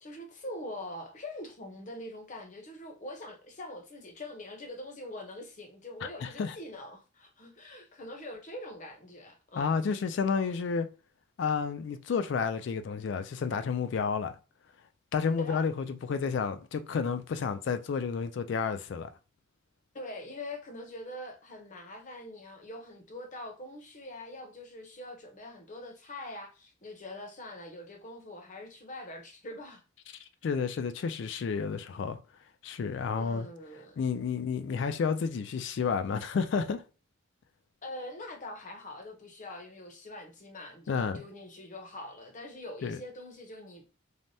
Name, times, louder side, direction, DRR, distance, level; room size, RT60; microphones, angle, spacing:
voice 1, 0.0-9.8 15.4-15.6 19.9-29.8 33.1-34.0 37.8-43.9, left 1 dB, 40° left, 0.7 m, -43 dB
voice 2, 6.0-6.6 9.6-10.9 11.4-14.3 15.1-19.1 30.4-32.2 32.6-33.5 34.0-36.8 40.9-41.2 42.8-43.0, left 5 dB, 60° left, 0.3 m, -31 dB
3.3 x 2.1 x 2.6 m
head